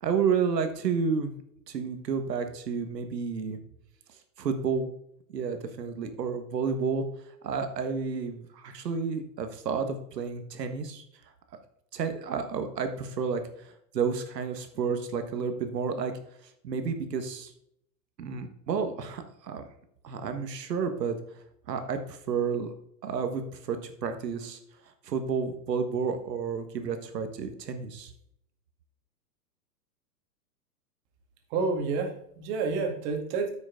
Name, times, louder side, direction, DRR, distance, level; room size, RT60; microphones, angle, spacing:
voice 1, 0.0-1.3 1.7-3.6 4.4-4.9 5.3-7.0 7.4-11.0 11.9-13.4 13.9-16.1 16.6-17.5 18.2-19.6 20.0-21.2 21.7-22.7 23.0-24.6 25.0-28.1, right 6 dB, 90° right, 8 dB, 1.7 m, -30 dB
voice 2, 31.5-33.5, right 4 dB, 45° right, 4 dB, 2.1 m, -29 dB
9.6 x 6.3 x 3.7 m, 0.73 s
hypercardioid pair, 125°, 48 cm